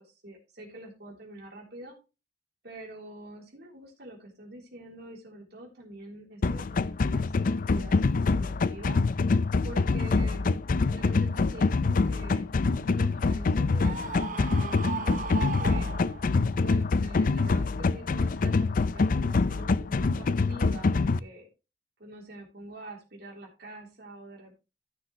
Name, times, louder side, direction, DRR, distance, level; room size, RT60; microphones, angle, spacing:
voice 1, 0.0-2.0 2.6-7.3 7.7-9.0 9.6-10.4 10.9-12.5 12.7-15.9 16.6-21.5 22.0-24.6, right 1 dB, 65° right, -1 dB, 3.6 m, -46 dB
sound 1, 6.4-21.2, left 3 dB, 50° left, 0.4 m, -25 dB
Screaming, 13.8-16.5, right 5 dB, 45° right, 0.8 m, -36 dB
14.0 x 6.4 x 3.1 m, 0.29 s
head